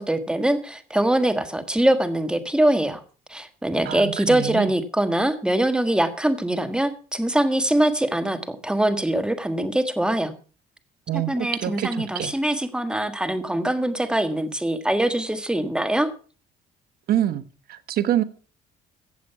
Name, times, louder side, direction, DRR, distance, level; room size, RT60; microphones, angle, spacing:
voice 1, 0.0-3.0 3.3-10.3 11.1-16.1, right 1 dB, 5° right, 1.6 m, -23 dB
voice 2, 3.8-4.7 11.1-12.3 17.1-17.4 17.7-18.2, right 12 dB, 65° right, 1.3 m, -25 dB
15.0 x 7.7 x 5.7 m
cardioid pair, 110°, 17 cm